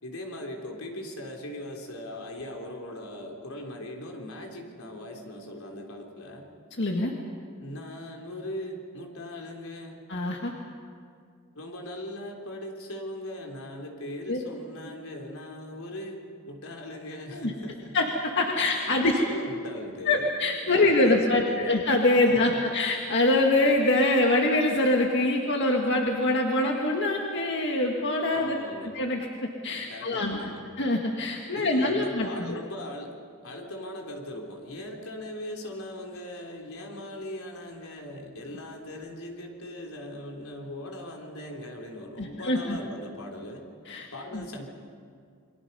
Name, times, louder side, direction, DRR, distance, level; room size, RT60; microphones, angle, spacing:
voice 1, 0.0-6.5 7.6-10.0 11.5-17.9 18.9-20.3 20.7-21.7 22.2-22.8 28.3-28.9 29.9-30.7 31.5-33.2 33.4-43.6 44.1-44.7, left 1 dB, 85° left, 1 dB, 3.6 m, -39 dB
voice 2, 6.8-7.1 10.1-10.5 14.3-14.4 17.3-17.5 17.9-19.2 20.1-28.6 28.9-30.4 30.8-32.6 42.2-42.8 43.9-44.1 44.3-44.4, left 2 dB, 60° left, 1 dB, 1.8 m, -24 dB
29.0 x 22.5 x 5.5 m, 2.2 s
head